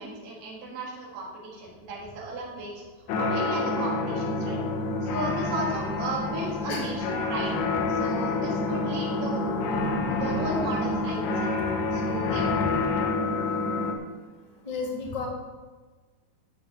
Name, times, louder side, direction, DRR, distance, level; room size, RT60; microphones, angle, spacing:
voice 1, 0.0-2.7 3.2-4.6 5.0-7.5 7.9-9.4 10.1-11.5 11.9-12.5, right 2 dB, 75° right, -3 dB, 4.2 m, -35 dB
sound 1, 3.1-13.9, left 3 dB, 75° left, 3.1 m, -28 dB
voice 2, 12.3-12.7 14.6-15.3, left 4 dB, 20° left, -2 dB, 1.0 m, -33 dB
13.5 x 5.3 x 6.7 m, 1.4 s
omnidirectional pair, 4.6 m